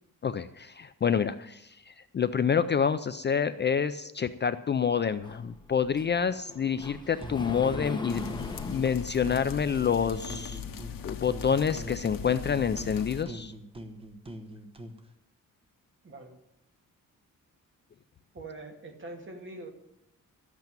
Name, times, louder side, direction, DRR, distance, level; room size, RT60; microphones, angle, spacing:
voice 1, 0.2-10.6 11.0-13.5, left 7 dB, 35° left, 12 dB, 0.4 m, -28 dB
Sliding door, 5.2-10.2, left 2 dB, 15° left, 1.4 m, -42 dB
sound 1, 7.2-8.9 9.2-11.0 11.3-15.0, equal, 15° right, 1.2 m, -43 dB
sound 2, 8.1-13.2, left 7 dB, 85° left, 1.3 m, -40 dB
voice 2, 18.3-19.7, right 2 dB, 35° right, 3 dB, 2.4 m, -43 dB
13.0 x 8.3 x 9.0 m, 0.81 s
wide cardioid pair, 160°, 33 cm